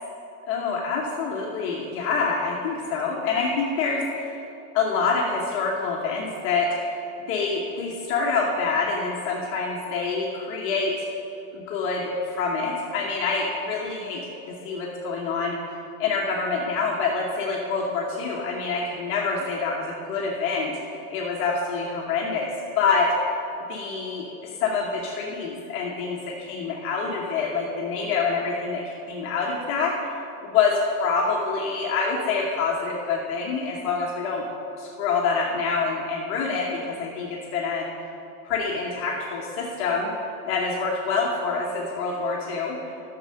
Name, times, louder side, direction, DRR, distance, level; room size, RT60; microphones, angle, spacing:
voice 1, 0.5-4.4 4.7-7.0 7.3-10.9 11.5-14.2 14.5-15.6 16.0-23.1 23.7-34.4 34.8-37.8 38.4-40.1 40.5-42.8, left 4 dB, 30° left, -3 dB, 1.1 m, -26 dB
11.5 x 6.8 x 6.4 m, 2.8 s
supercardioid pair, 170°, 44 cm